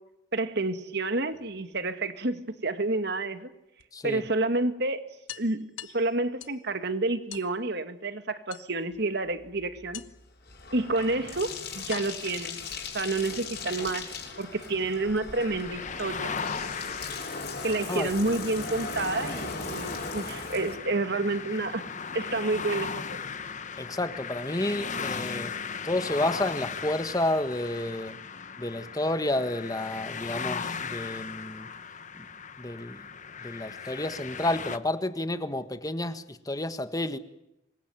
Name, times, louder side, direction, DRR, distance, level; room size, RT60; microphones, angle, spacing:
voice 1, 0.3-3.5 4.0-5.0 5.4-5.6 5.9-10.0 10.7-11.5 11.7-12.6 12.9-14.1 14.4-16.3 17.6-21.8 22.1-23.2, right 2 dB, 60° right, 2.1 m, -29 dB
sound 1, 1.3-2.3 3.8-3.9 4.3-4.4 4.7-4.8 5.3-6.7 7.3-7.5 8.5-9.1 9.9-10.4 11.2-11.3 11.9-13.3, left 9 dB, 80° left, 1.3 m, -45 dB
voice 2, 3.9-4.2 17.9-18.1 23.8-25.5 25.8-28.2 28.6-31.7 32.2-32.3 32.6-33.1 33.4-37.2, left 1 dB, 20° left, 1.5 m, -30 dB
Bathtub (filling or washing), 9.4-20.8, left 4 dB, 55° left, 6.8 m, -39 dB
sound 2, 15.4-34.8, left 5 dB, 40° left, 1.2 m, -37 dB
26.5 x 22.5 x 9.3 m
head